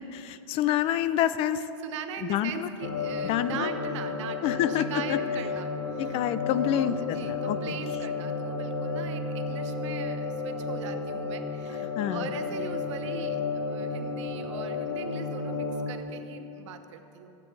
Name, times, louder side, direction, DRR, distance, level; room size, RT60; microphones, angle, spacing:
voice 1, 0.1-1.6 2.3-2.7 3.2-3.7 4.4-5.2 6.0-7.6 12.0-12.3, left 11 dB, 40° left, 14 dB, 0.4 m, -27 dB
voice 2, 1.8-17.4, right 8 dB, 70° right, 7 dB, 1.0 m, -41 dB
sound 1, 2.8-16.0, left 4 dB, 65° left, 0.9 m, -32 dB
15.0 x 8.2 x 3.4 m, 2.8 s
supercardioid pair, 130°, 16 cm